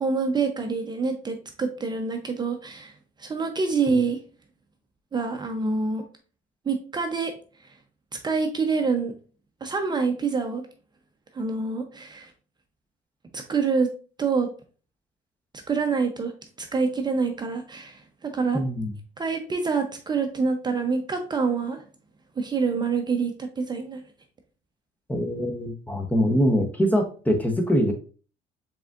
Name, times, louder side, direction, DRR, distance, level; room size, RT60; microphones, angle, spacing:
voice 1, 0.0-4.2 5.1-6.0 6.7-7.3 8.2-9.1 9.6-10.6 11.3-12.3 13.3-13.9 14.2-14.5 15.7-16.3 16.6-18.6 19.2-21.8 22.4-24.0, right 4 dB, 25° right, 5 dB, 0.6 m, -26 dB
voice 2, 18.5-18.9 25.1-27.9, equal, 10° left, 5 dB, 0.7 m, -23 dB
4.8 x 3.6 x 2.4 m, 0.38 s
cardioid pair, 110°, 17 cm